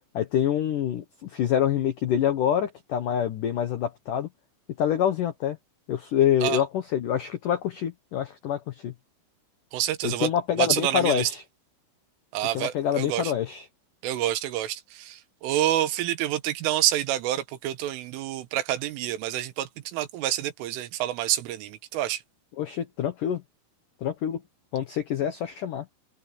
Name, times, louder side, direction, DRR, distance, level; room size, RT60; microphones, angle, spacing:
voice 1, 0.1-4.3 4.8-5.6 5.9-8.9 10.0-11.4 12.5-13.7 22.6-23.4 24.0-24.4 24.7-25.9, left 10 dB, 80° left, 1.9 m, -26 dB
voice 2, 9.7-10.3 10.6-11.3 12.3-13.3 14.0-22.2, right 13 dB, 80° right, 3.8 m, -28 dB
open air
omnidirectional pair, 5.7 m